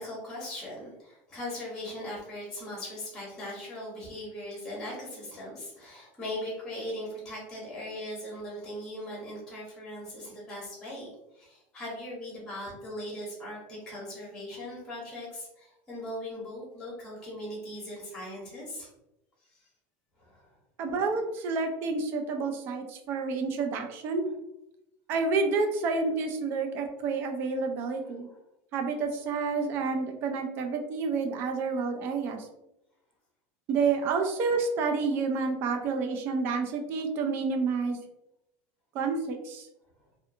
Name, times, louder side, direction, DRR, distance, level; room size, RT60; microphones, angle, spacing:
voice 1, 0.0-18.9 20.2-20.5 28.0-28.1, left 1 dB, 10° left, -5 dB, 0.9 m, -39 dB
voice 2, 20.8-24.2 25.1-28.3 28.7-32.5 33.7-38.0 38.9-39.7, right 4 dB, 35° right, 4 dB, 0.4 m, -29 dB
2.6 x 2.5 x 2.5 m, 0.87 s
supercardioid pair, 175°, 7 cm